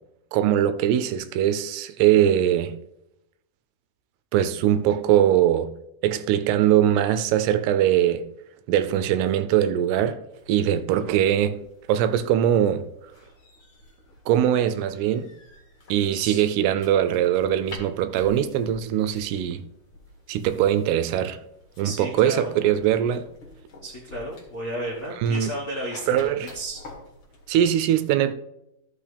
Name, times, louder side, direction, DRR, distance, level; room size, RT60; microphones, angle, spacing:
voice 1, 0.3-2.8 4.3-5.7 6.0-8.3 8.7-11.6 11.9-12.9 14.3-15.3 15.9-19.6 20.3-21.4 21.8-23.3 25.2-25.5 26.1-26.5 27.5-28.3, right 10 dB, 85° right, 2.6 m, -21 dB
sound 1, 10.3-27.6, left 1 dB, 40° left, 2.0 m, -48 dB
voice 2, 16.1-16.5 21.8-22.5 23.8-26.8, right 1 dB, 75° left, 0.7 m, -33 dB
14.0 x 5.9 x 3.4 m
omnidirectional pair, 4.7 m